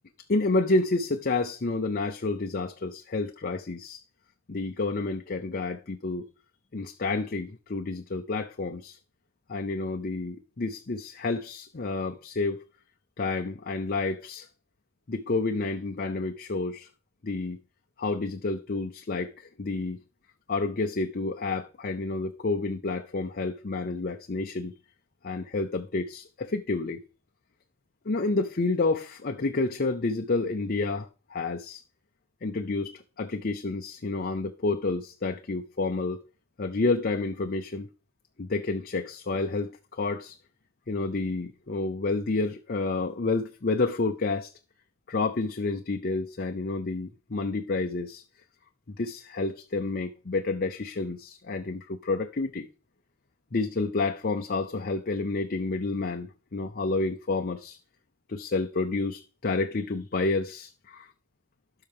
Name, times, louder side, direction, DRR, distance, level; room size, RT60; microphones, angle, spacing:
voice 1, 0.3-4.0 4.5-6.3 6.7-9.0 9.5-12.6 13.2-14.5 15.1-16.9 17.2-17.6 18.0-20.0 20.5-24.7 25.2-27.0 28.1-31.8 32.4-36.2 36.6-37.9 38.4-40.4 40.9-44.5 45.1-48.2 48.9-52.7 53.5-57.8 58.3-61.1, left 3 dB, 45° left, 0.7 m, -29 dB
12.5 x 5.6 x 3.6 m
head